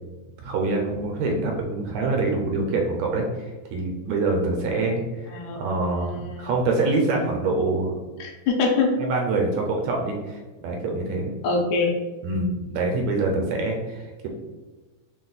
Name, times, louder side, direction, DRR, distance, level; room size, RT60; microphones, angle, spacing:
voice 1, 0.4-5.0 5.5-7.9 9.0-11.3 12.2-14.3, right 3 dB, 80° right, 1 dB, 1.8 m, -25 dB
voice 2, 5.3-5.6 5.9-6.5 8.2-9.0 11.4-11.9, left 4 dB, 85° left, 2 dB, 2.0 m, -24 dB
4.7 x 2.2 x 3.9 m, 1.2 s
omnidirectional pair, 3.4 m